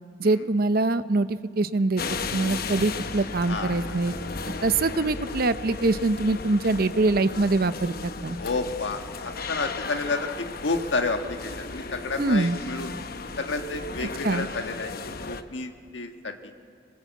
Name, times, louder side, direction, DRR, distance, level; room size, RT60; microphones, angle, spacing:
voice 1, 0.2-2.0 2.3-4.1 4.6-8.4 12.2-12.6 14.2-14.5, right 2 dB, 55° right, 13 dB, 0.7 m, -24 dB
sound 1, 2.0-15.4, left 4 dB, 55° left, 0.9 m, -35 dB
voice 2, 3.5-4.1 8.4-12.9 13.4-16.5, left 3 dB, 75° left, 5 dB, 1.5 m, -31 dB
26.0 x 21.0 x 8.3 m, 2.3 s
head